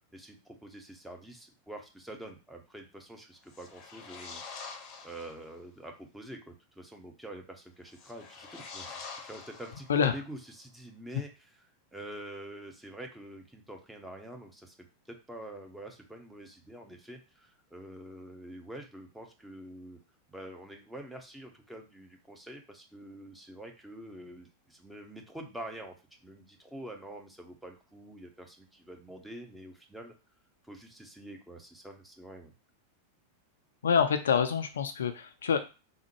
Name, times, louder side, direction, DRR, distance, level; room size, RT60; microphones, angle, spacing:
voice 1, 0.1-4.4 5.0-11.5 11.9-14.7 15.1-20.0 20.3-26.0 26.2-30.2 30.6-32.5, right 1 dB, 5° right, 2 dB, 0.6 m, -46 dB
sound 1, 3.4-5.5 7.9-10.2, left 5 dB, 35° left, 0.7 m, -46 dB
voice 2, 33.8-35.6, left 7 dB, 65° left, 9 dB, 0.3 m, -26 dB
3.4 x 2.1 x 3.1 m, 0.31 s
figure-of-eight pair, 90°, 0 cm